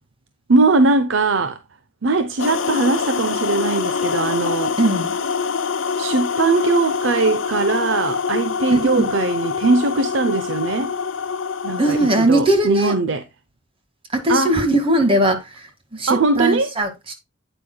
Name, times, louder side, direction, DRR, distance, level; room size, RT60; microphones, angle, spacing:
voice 1, 0.5-1.6 2.0-4.8 6.0-10.9 11.6-13.2 14.3-14.5 16.1-16.7, right 3 dB, 80° right, 0.8 m, -20 dB
sound 1, 2.4-12.3, left 5 dB, 85° left, 0.8 m, -25 dB
voice 2, 4.8-5.1 8.7-9.1 11.8-13.0 14.1-17.1, right 1 dB, 30° right, 2.0 m, -19 dB
9.0 x 8.7 x 2.3 m
head